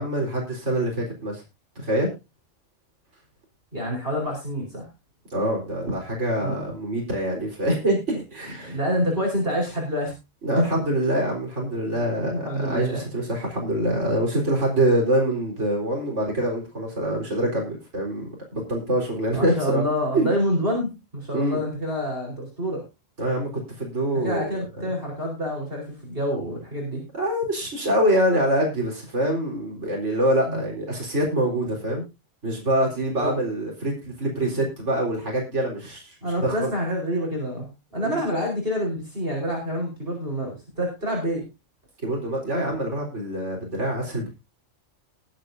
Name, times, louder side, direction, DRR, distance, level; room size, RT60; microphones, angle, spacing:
voice 1, 0.0-1.4 1.8-2.1 5.3-8.8 10.4-19.8 20.1-20.3 21.3-21.6 23.2-24.5 24.9-25.0 27.1-32.0 32.4-36.1 36.4-36.7 38.0-38.2 42.0-44.3, right 1 dB, 60° right, -1 dB, 4.5 m, -25 dB
voice 2, 3.7-4.9 6.4-6.6 8.5-10.1 11.8-12.1 12.4-13.0 19.3-22.8 24.2-27.0 30.5-30.6 33.2-33.4 34.5-34.6 36.2-41.4, equal, 45° right, -1 dB, 4.9 m, -27 dB
20.5 x 9.0 x 2.7 m, 0.26 s
omnidirectional pair, 1.4 m